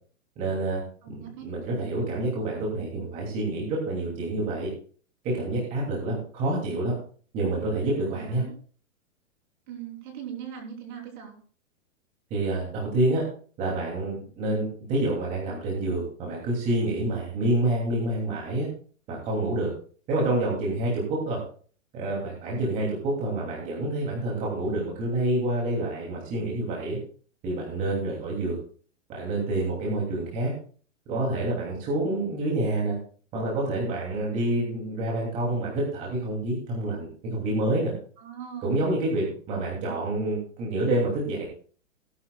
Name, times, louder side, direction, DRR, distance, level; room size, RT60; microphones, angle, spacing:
voice 1, 0.4-0.8 1.1-4.7 5.2-6.9 7.3-8.4 12.3-13.2 13.6-18.7 19.1-19.7 20.1-21.4 21.9-27.0 27.4-28.6 29.1-30.5 31.1-33.0 33.3-37.9 38.6-41.4, right 2 dB, 20° right, -3 dB, 2.8 m, -27 dB
voice 2, 1.0-1.5 8.1-8.6 9.7-11.4 22.4-22.8 38.2-38.8, right 8 dB, 35° right, 2 dB, 3.7 m, -40 dB
18.0 x 11.0 x 2.4 m, 0.43 s
hypercardioid pair, 170°, 40 cm